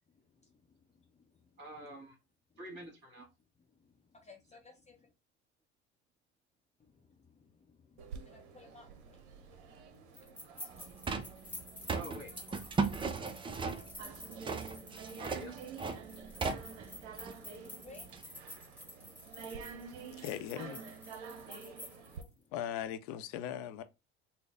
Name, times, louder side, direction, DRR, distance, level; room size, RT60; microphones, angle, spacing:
voice 1, 0.2-1.6 2.5-2.6 3.6-5.1 6.8-11.9 12.6-15.2 15.9-20.2 21.3-22.5, left 4 dB, 20° left, 0.7 m, -62 dB
voice 2, 1.6-2.2 2.6-3.3 11.9-12.6 15.2-15.6, equal, 35° right, 1.7 m, -47 dB
sound 1, 8.0-22.2, right 6 dB, 75° right, 0.6 m, -49 dB
sound 2, 10.1-22.3, left 1 dB, 5° left, 1.5 m, -51 dB
sound 3, 10.7-18.2, right 4 dB, 15° right, 0.4 m, -38 dB
voice 3, 20.2-20.8 22.5-23.8, left 10 dB, 60° left, 0.6 m, -39 dB
4.0 x 2.0 x 3.3 m
hypercardioid pair, 65°, 34 cm